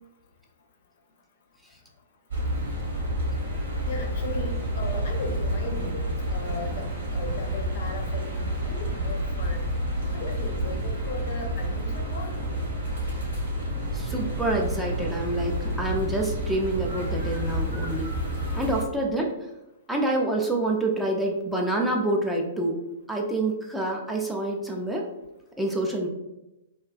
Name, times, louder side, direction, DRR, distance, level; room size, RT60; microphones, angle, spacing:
sound 1, 2.3-18.8, right 1 dB, 70° right, 1.0 m, -29 dB
voice 1, 3.9-6.0 6.3-9.7 10.1-12.4, left 3 dB, 55° left, 2 dB, 0.5 m, -37 dB
voice 2, 13.9-18.1 18.5-19.3 19.9-22.8 23.1-25.1 25.6-26.1, right 2 dB, 5° right, -1 dB, 0.3 m, -27 dB
2.4 x 2.2 x 2.4 m, 0.94 s
figure-of-eight pair, 110°, 0 cm